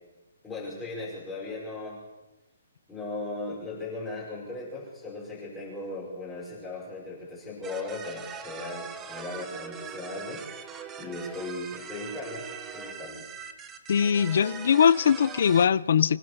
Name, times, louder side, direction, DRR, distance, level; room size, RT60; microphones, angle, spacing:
voice 1, 0.4-2.0 2.9-10.7 11.0-12.4 12.7-13.2, left 2 dB, 10° left, -7 dB, 5.4 m, -37 dB
sound 1, 7.6-15.7, right 6 dB, 10° right, 1.1 m, -41 dB
voice 2, 13.9-16.2, left 7 dB, 50° left, 20 dB, 0.6 m, -21 dB
25.5 x 16.5 x 6.9 m, 1.0 s
hypercardioid pair, 175°, 0 cm